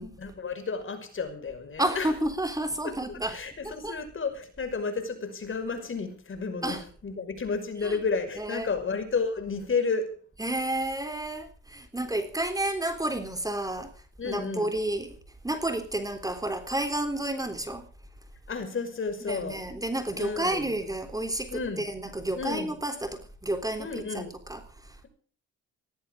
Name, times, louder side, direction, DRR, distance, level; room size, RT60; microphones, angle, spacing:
voice 1, 0.2-2.1 2.8-10.2 14.2-14.7 18.5-19.6 20.2-20.7 21.5-21.9 22.3-22.8 23.8-24.3, left 4 dB, 40° left, 8 dB, 5.6 m, -32 dB
voice 2, 1.8-3.4 3.6-4.0 6.6-6.8 7.8-8.0 8.4-8.7 10.4-13.9 14.2-15.2 15.4-17.8 19.3-21.5 21.8-25.0, right 1 dB, 10° right, 7 dB, 3.6 m, -31 dB
18.0 x 17.5 x 3.8 m, 0.42 s
cardioid pair, 90°, 30 cm